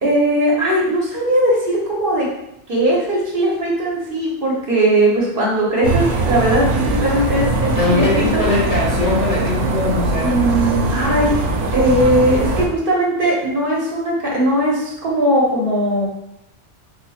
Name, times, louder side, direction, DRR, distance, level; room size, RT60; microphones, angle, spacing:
voice 1, 0.0-2.3 2.7-8.6 10.2-11.4 11.7-16.0, right 1 dB, 55° right, -4 dB, 0.9 m, -19 dB
sound 1, 5.8-12.7, right 2 dB, 90° right, 0.9 m, -21 dB
voice 2, 7.7-10.3, left 2 dB, 40° left, -6 dB, 0.9 m, -20 dB
3.6 x 2.9 x 2.3 m, 0.81 s
omnidirectional pair, 1.2 m